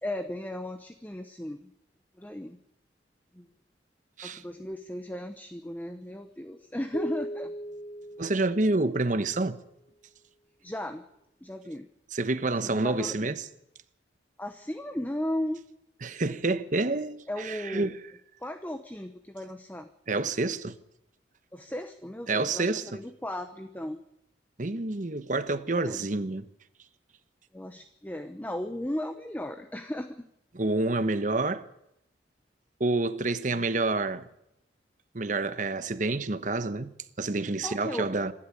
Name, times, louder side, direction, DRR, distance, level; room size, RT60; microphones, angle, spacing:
voice 1, 0.0-1.7 2.2-2.6 3.3-3.5 4.2-7.5 10.6-11.0 11.4-11.9 12.6-13.3 14.4-15.6 17.3-18.0 18.4-19.9 21.5-24.0 25.8-26.0 27.5-30.3 37.6-38.1, left 1 dB, 10° left, 0.8 m, -36 dB
sound 1, 6.9-9.5, right 1 dB, 40° left, 1.0 m, -39 dB
voice 2, 8.2-9.6 12.1-13.4 16.0-17.9 20.1-20.7 22.3-23.0 24.6-26.5 30.5-31.7 32.8-34.2 35.1-38.3, right 2 dB, 45° right, 1.1 m, -28 dB
26.0 x 11.5 x 8.6 m
head